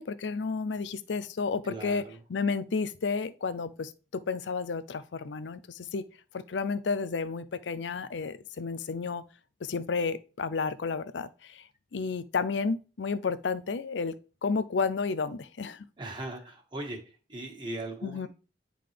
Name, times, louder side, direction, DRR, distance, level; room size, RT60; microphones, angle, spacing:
voice 1, 0.0-2.0 2.3-6.1 6.3-9.2 9.6-11.6 11.9-14.2 14.4-15.9 18.0-18.3, left 4 dB, 80° left, 0.5 m, -31 dB
voice 2, 1.7-2.2 16.0-17.0 17.3-18.3, right 2 dB, 25° right, 1.7 m, -38 dB
10.0 x 3.9 x 3.4 m
head